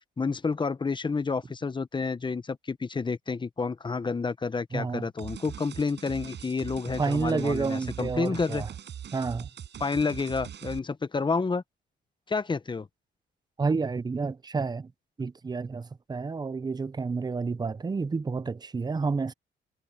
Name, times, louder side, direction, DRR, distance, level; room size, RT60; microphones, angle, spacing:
voice 1, 0.2-8.6 9.8-11.6 12.3-12.9, left 4 dB, 25° left, 1.0 m, -29 dB
voice 2, 4.7-5.0 7.0-8.7 9.1-9.5 13.6-14.9 15.2-19.3, right 4 dB, 20° right, 0.6 m, -30 dB
sound 1, 5.2-10.8, right 9 dB, 60° right, 8.0 m, -41 dB
cardioid pair, 90°, 20 cm